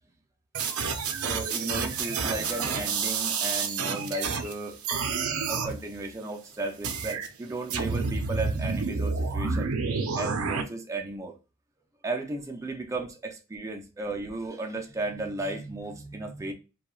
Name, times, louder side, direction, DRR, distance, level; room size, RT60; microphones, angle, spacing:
sound 1, 0.5-4.5 4.8-5.7 6.8-7.3 7.7-10.6, right 5 dB, 75° right, 0.5 m, -29 dB
voice 1, 1.2-4.8 5.5-9.7 10.1-11.4 12.0-16.5, right 2 dB, 15° right, 0.3 m, -34 dB
3.0 x 2.2 x 2.2 m
head